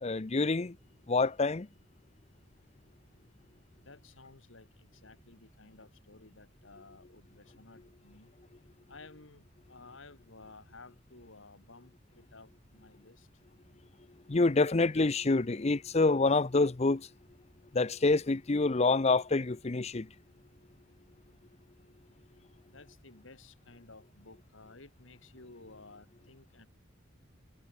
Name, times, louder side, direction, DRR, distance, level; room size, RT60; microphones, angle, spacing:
voice 1, 0.0-0.8 1.1-1.7 14.3-17.1 17.7-20.1, left 3 dB, 35° left, 0.6 m, -27 dB
voice 2, 3.8-8.3 8.9-13.3 22.7-26.7, left 3 dB, 75° left, 2.8 m, -55 dB
head